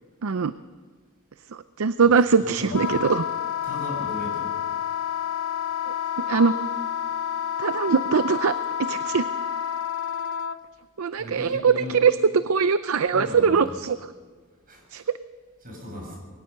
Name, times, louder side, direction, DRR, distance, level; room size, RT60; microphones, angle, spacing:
voice 1, 0.2-0.5 1.8-3.2 6.3-6.5 7.6-8.5 8.8-9.3 11.0-12.1 12.4-14.0 14.9-15.0, right 5 dB, 80° right, 13 dB, 0.5 m, -21 dB
voice 2, 2.0-3.0 3.6-4.5 11.2-12.0 13.1-13.6 14.7-15.0 15.6-16.2, left 1 dB, 40° right, 0 dB, 7.6 m, -37 dB
Wind instrument woodwind instrument, 2.7-10.6, left 9 dB, 80° left, 0.8 m, -29 dB
22.0 x 18.0 x 6.7 m, 1.5 s
head